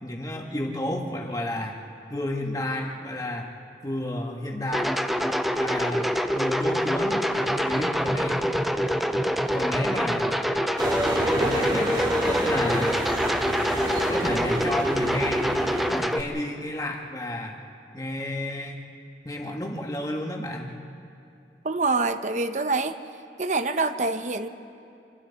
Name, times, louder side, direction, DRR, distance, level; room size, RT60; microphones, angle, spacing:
voice 1, 0.0-1.8 2.1-3.5 3.8-5.0 5.6-8.4 9.5-10.3 11.3-13.0 14.1-15.5 15.9-17.6 17.9-18.8 19.2-20.8, left 1 dB, 20° left, 1 dB, 1.8 m, -31 dB
sound 1, 4.7-16.2, equal, ahead, 0.6 m, -25 dB
sound 2, 10.8-15.9, right 1 dB, 25° right, 2.4 m, -29 dB
voice 2, 21.6-23.0 23.4-24.5, right 3 dB, 45° right, 9 dB, 0.9 m, -25 dB
27.5 x 25.0 x 4.2 m, 2.5 s
head